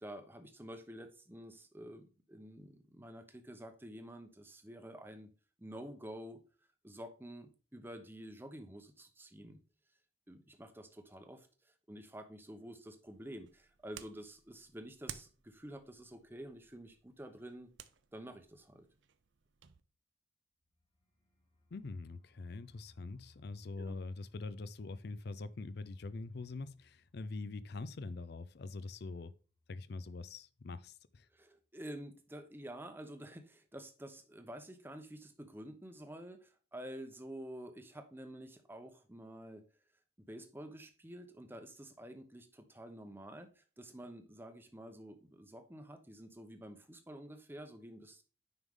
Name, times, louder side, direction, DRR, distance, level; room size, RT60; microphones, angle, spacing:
voice 1, 0.0-5.3 5.6-6.4 6.8-9.6 10.3-17.7 18.1-18.9 23.8-23.9 31.3-39.6 40.2-48.2, right 1 dB, 10° right, 0.8 m, -49 dB
sound 1, 13.1-19.8, right 9 dB, 70° right, 0.6 m, -55 dB
sound 2, 20.6-30.3 30.6-30.7 31.0-31.5, left 2 dB, 30° left, 2.9 m, -70 dB
voice 2, 21.7-29.3 29.7-31.3, left 3 dB, 55° left, 0.5 m, -44 dB
9.4 x 5.4 x 3.6 m
head